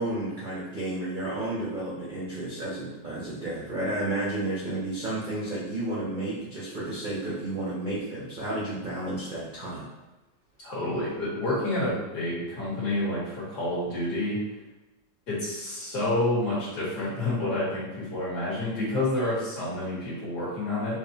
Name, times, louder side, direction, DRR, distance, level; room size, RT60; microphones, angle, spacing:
voice 1, 0.0-9.9, right 1 dB, 60° right, -7 dB, 0.5 m, -32 dB
voice 2, 10.6-14.4 15.3-21.0, left 1 dB, 60° left, -8 dB, 2.0 m, -29 dB
5.0 x 2.4 x 2.7 m, 1.1 s
omnidirectional pair, 2.0 m